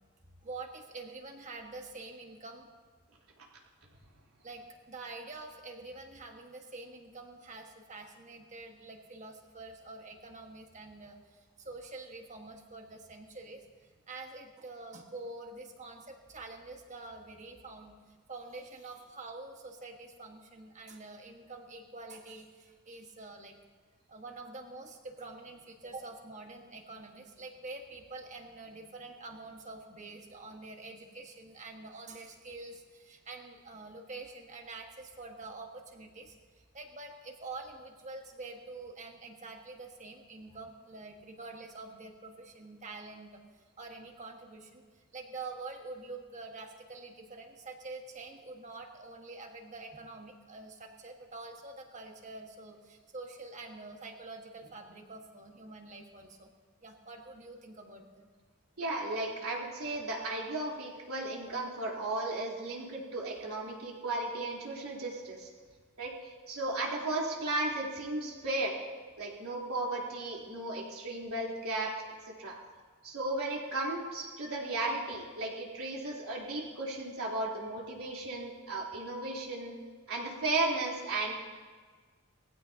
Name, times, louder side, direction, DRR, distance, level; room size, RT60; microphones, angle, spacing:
voice 1, 0.4-2.7 4.4-17.9 18.3-23.5 24.1-36.3 36.7-43.4 43.8-44.8 45.1-56.5 56.8-58.3, right 3 dB, 35° right, 3 dB, 1.5 m, -46 dB
voice 2, 58.8-65.5 66.0-66.1 66.5-68.7 69.2-71.9 72.4-72.5 73.0-79.7 80.1-81.3, right 2 dB, 80° right, -4 dB, 3.5 m, -35 dB
20.5 x 15.5 x 2.8 m, 1.5 s
head